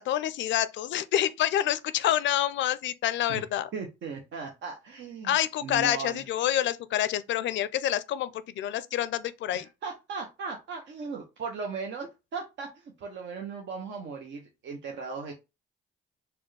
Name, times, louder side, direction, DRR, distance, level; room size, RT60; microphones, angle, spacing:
voice 1, 0.0-3.7 5.2-9.7, left 12 dB, 70° left, 0.4 m, -27 dB
voice 2, 3.7-6.2 9.5-15.3, right 5 dB, 65° right, 0.7 m, -37 dB
4.2 x 2.2 x 3.2 m
cardioid pair, 90°, 20 cm